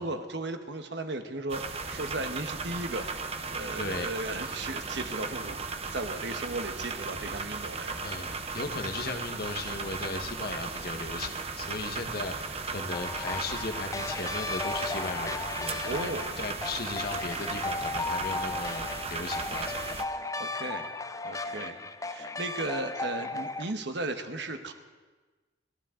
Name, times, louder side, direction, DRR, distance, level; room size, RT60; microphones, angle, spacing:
voice 1, 0.0-3.1 3.5-5.6 5.9-8.0 15.8-16.3 20.3-20.9 21.2-24.7, right 2 dB, 65° right, 7 dB, 1.2 m, -36 dB
sound 1, 1.5-20.0, right 4 dB, 35° right, 0.9 m, -36 dB
voice 2, 3.8-4.1 8.0-20.0, left 3 dB, 55° left, 6 dB, 1.3 m, -37 dB
sound 2, 12.9-23.7, left 3 dB, 15° left, 0.5 m, -35 dB
30.0 x 11.5 x 3.8 m, 1.3 s
head